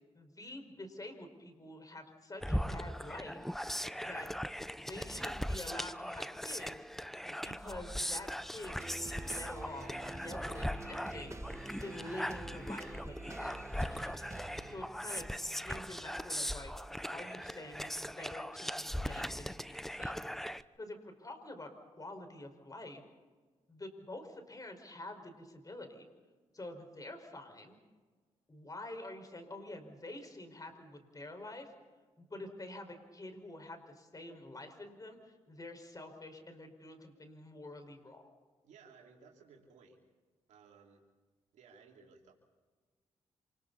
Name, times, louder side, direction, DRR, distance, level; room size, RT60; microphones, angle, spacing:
voice 1, 0.1-3.4 3.9-4.3 4.7-6.8 7.2-11.3 11.7-14.1 14.7-16.7 17.1-20.3 20.8-23.0 23.7-26.0 26.5-27.8 28.5-31.7 32.2-38.3, left 1 dB, 30° left, 5 dB, 5.2 m, -47 dB
sound 1, 2.4-20.6, equal, ahead, 0.8 m, -39 dB
sound 2, 8.8-14.8, right 2 dB, 25° right, 1.6 m, -47 dB
voice 2, 38.6-40.0 40.5-41.0 41.5-42.3, right 5 dB, 90° right, -1 dB, 3.2 m, -59 dB
27.5 x 27.0 x 4.2 m, 1.4 s
cardioid pair, 65°, 12 cm